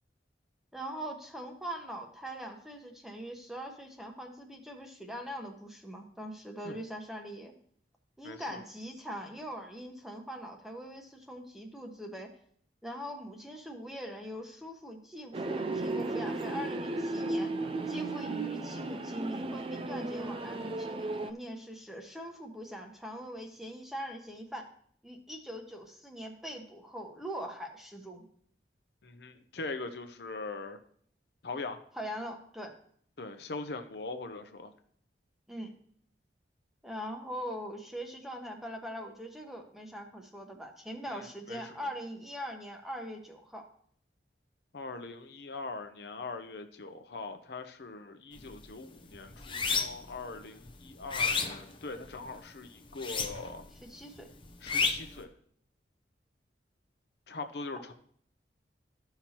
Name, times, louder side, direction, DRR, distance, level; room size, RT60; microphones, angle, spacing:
voice 1, 0.7-7.5 8.2-12.3 12.8-17.5 17.9-24.7 25.0-28.3 31.9-32.7 35.5-35.7 36.8-43.7 53.9-54.3, equal, ahead, 2 dB, 1.0 m, -42 dB
voice 2, 8.2-8.6 29.0-30.8 31.4-31.8 33.2-34.7 41.1-41.8 44.7-53.6 54.6-55.3 57.3-57.9, left 3 dB, 65° left, 7 dB, 0.7 m, -41 dB
sound 1, 15.3-21.3, right 2 dB, 30° right, 0.3 m, -35 dB
sound 2, 48.4-48.6 49.0-50.1 50.6-52.3 52.9-53.7 53.9-55.2, left 5 dB, 30° left, 0.7 m, -31 dB
14.0 x 5.7 x 2.9 m, 0.62 s
head